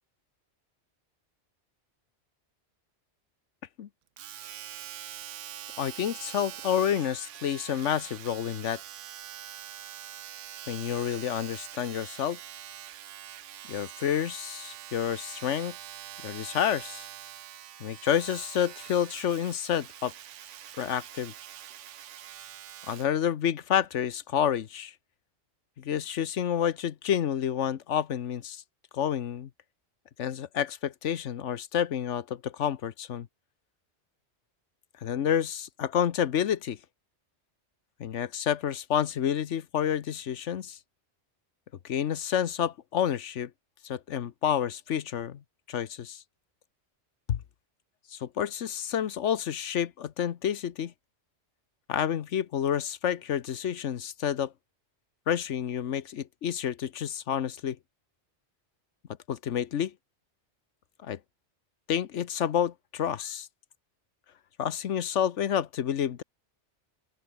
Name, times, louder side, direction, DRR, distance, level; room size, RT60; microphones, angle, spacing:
Domestic sounds home sounds, 4.2-23.2 23.8-23.9, right 11 dB, 85° right, 1.1 m, -44 dB
voice 1, 5.8-8.8 10.7-12.4 13.7-15.7 16.2-17.1 17.8-20.1 20.8-21.3 22.9-24.9 25.8-28.6 28.9-29.5 30.2-33.3 35.0-36.8 38.0-40.8 41.8-43.5 43.8-45.4 45.7-46.2 47.3-47.4 48.1-50.9 51.9-54.5 55.3-57.8 59.3-59.9 61.0-61.2 61.9-63.5 64.6-66.2, left 9 dB, 80° left, 1.2 m, -29 dB
open air
omnidirectional pair, 1.2 m